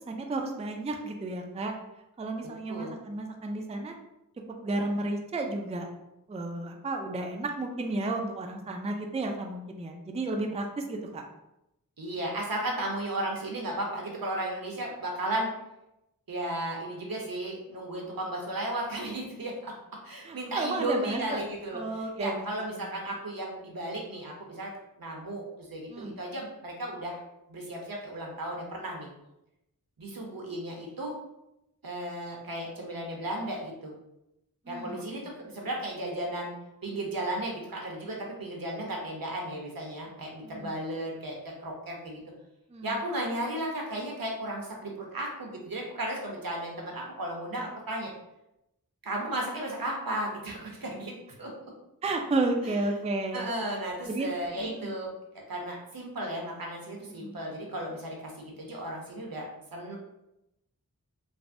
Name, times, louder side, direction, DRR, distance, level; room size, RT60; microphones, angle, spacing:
voice 1, 0.1-1.7 2.2-3.9 4.6-5.9 6.3-11.3 20.2-21.4 21.7-22.4 25.9-26.2 34.7-35.3 40.4-40.7 42.7-42.9 52.0-53.5 54.1-54.9 57.1-57.7, right 2 dB, 20° right, 3 dB, 0.3 m, -32 dB
voice 2, 12.0-15.5 16.3-19.7 20.0-24.7 25.0-27.2 27.5-29.1 30.0-31.1 31.8-33.9 34.7-36.5 36.8-42.2 42.8-48.1 49.0-51.1 51.4-51.7 52.6-52.8 53.3-55.1 55.5-59.5 59.7-59.9, right 1 dB, 70° right, -1 dB, 0.7 m, -35 dB
3.4 x 2.0 x 2.5 m, 0.88 s
wide cardioid pair, 45°, 36 cm